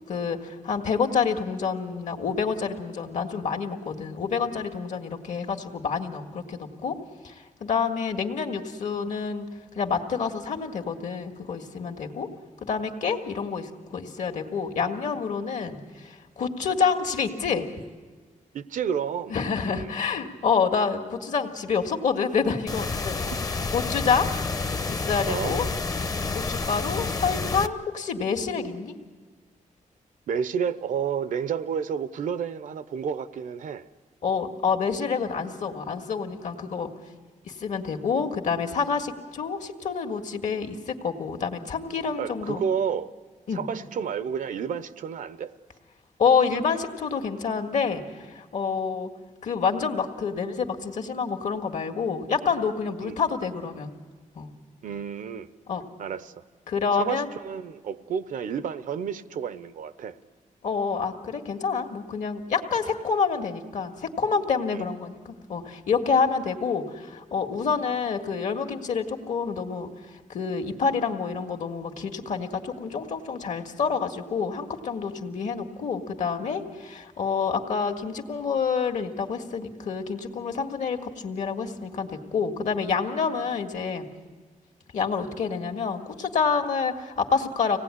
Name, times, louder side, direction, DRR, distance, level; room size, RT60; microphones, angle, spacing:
voice 1, 0.1-7.0 7.2-9.5 9.8-12.3 12.6-17.7 19.3-23.2 23.7-24.3 24.9-25.6 26.3-28.9 34.2-36.9 37.5-42.6 43.5-43.6 46.2-49.1 49.4-53.9 54.4-54.5 55.7-55.8 56.7-57.3 60.6-84.1 84.9-87.8, left 5 dB, 70° left, 4 dB, 1.8 m, -28 dB
voice 2, 18.5-19.3 19.7-19.9 25.3-25.5 30.3-33.8 42.2-43.1 43.5-45.5 53.0-53.2 54.8-55.5 56.0-56.4 56.9-60.2 64.7-64.8, right 7 dB, 80° right, 14 dB, 0.8 m, -30 dB
sound 1, 22.7-27.7, left 3 dB, 25° left, 0.7 m, -29 dB
25.5 x 18.0 x 9.8 m, 1.5 s
wide cardioid pair, 170°, 13 cm